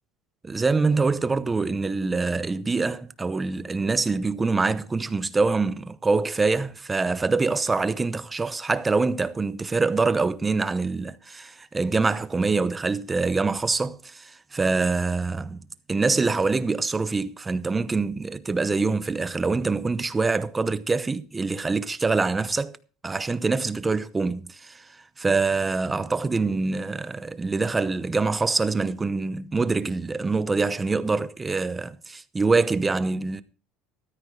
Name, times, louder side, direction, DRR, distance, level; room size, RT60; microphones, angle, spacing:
voice 1, 0.4-15.6 15.9-22.8 23.0-24.9 25.2-33.4, right 3 dB, 15° right, 0.8 m, -25 dB
14.0 x 13.5 x 3.7 m
cardioid pair, 150°, 0 cm